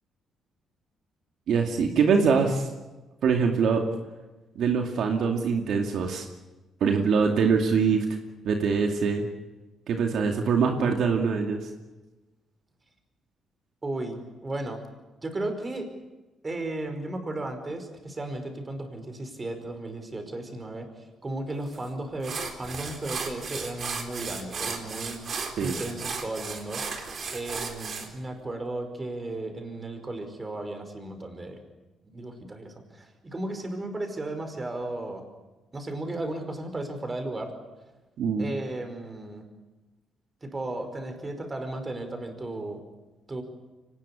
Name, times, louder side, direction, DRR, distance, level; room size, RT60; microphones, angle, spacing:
voice 1, 1.5-2.7 3.2-3.8 4.6-6.3 6.8-8.1 8.4-9.3 9.9-11.6 25.6-25.7 38.2-38.5, right 5 dB, 70° right, 3 dB, 2.4 m, -23 dB
voice 2, 13.8-14.8 15.2-15.9 16.4-20.9 21.2-25.2 25.6-26.8 27.3-31.6 32.1-35.2 35.7-37.5 38.4-39.4 40.4-42.8 43.3-43.4, right 2 dB, 25° right, 6 dB, 5.1 m, -35 dB
sound 1, 21.7-21.8 22.2-28.1, right 5 dB, 50° right, 4.0 m, -35 dB
24.5 x 19.5 x 8.5 m, 1.1 s
cardioid pair, 90°, 0 cm